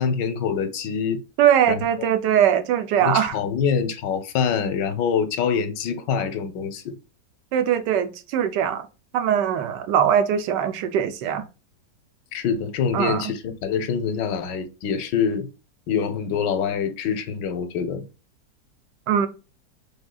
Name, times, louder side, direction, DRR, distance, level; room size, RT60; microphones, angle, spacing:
voice 1, 0.0-1.2 1.7-2.1 3.0-7.0 12.3-15.5 15.9-18.0, left 6 dB, 90° left, 1.4 m, -25 dB
voice 2, 1.4-3.3 7.5-8.9 9.1-11.4 12.9-13.3 19.1-19.3, right 9 dB, 85° right, 1.3 m, -21 dB
5.2 x 3.4 x 2.3 m
omnidirectional pair, 1.8 m